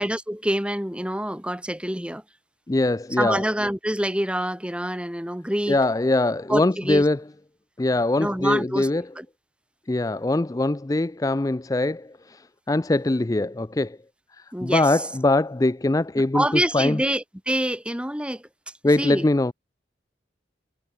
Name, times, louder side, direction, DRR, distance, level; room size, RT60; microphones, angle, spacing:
voice 1, 0.0-2.2 3.1-5.8 6.5-7.0 8.2-8.9 9.2-9.3 14.5-15.0 16.2-18.4 19.0-19.2, right 1 dB, 5° right, 2.9 m, -26 dB
voice 2, 2.7-3.4 5.7-7.2 7.8-9.0 9.9-14.0 14.4-17.0 18.8-19.5, left 2 dB, 20° left, 0.4 m, -22 dB
head